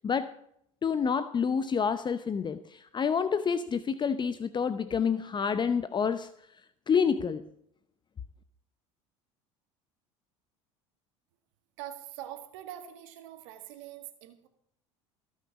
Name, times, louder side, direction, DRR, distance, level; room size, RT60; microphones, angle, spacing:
voice 1, 0.0-0.4 0.8-6.3 6.9-7.5, left 6 dB, 30° left, 14 dB, 0.7 m, -28 dB
voice 2, 11.8-14.5, right 12 dB, 75° right, 8 dB, 1.8 m, -44 dB
18.0 x 6.4 x 7.2 m, 0.72 s
hypercardioid pair, 80°, 16 cm